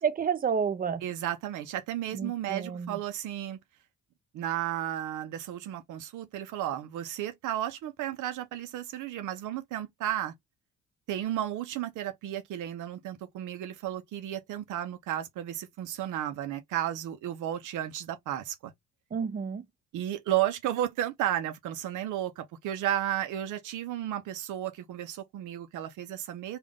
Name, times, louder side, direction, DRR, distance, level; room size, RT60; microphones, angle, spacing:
voice 1, 0.0-1.0 2.1-3.0 19.1-19.6, right 6 dB, 30° right, 0.6 m, -30 dB
voice 2, 1.0-3.6 4.3-10.3 11.1-18.7 19.9-26.6, right 12 dB, 85° right, 0.7 m, -33 dB
3.6 x 2.4 x 3.5 m
cardioid pair, 90°, 30 cm